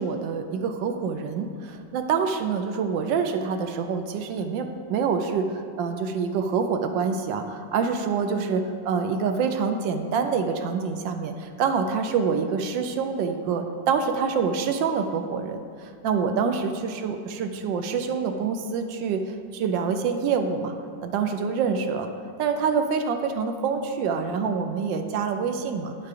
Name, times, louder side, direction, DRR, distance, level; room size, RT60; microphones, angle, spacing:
voice 1, 0.0-20.7 21.0-22.1 22.4-26.1, right 5 dB, 80° right, 6 dB, 1.3 m, -26 dB
9.0 x 4.7 x 4.8 m, 2.1 s
omnidirectional pair, 2.0 m